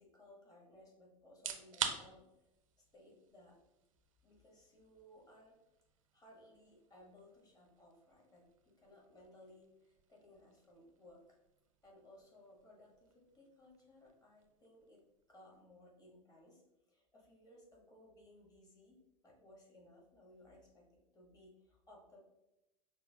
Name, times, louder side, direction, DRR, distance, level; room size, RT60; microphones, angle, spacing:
voice 1, 0.0-2.5 2.9-3.6 4.2-5.6 6.1-11.4 11.8-15.0 15.3-19.0 19.2-22.2, left 1 dB, 20° left, -2 dB, 1.3 m, -61 dB
sound 1, 1.3-16.1, right 8 dB, 70° right, 0.4 m, -50 dB
5.9 x 2.1 x 2.7 m, 0.93 s
figure-of-eight pair, 80°, 17 cm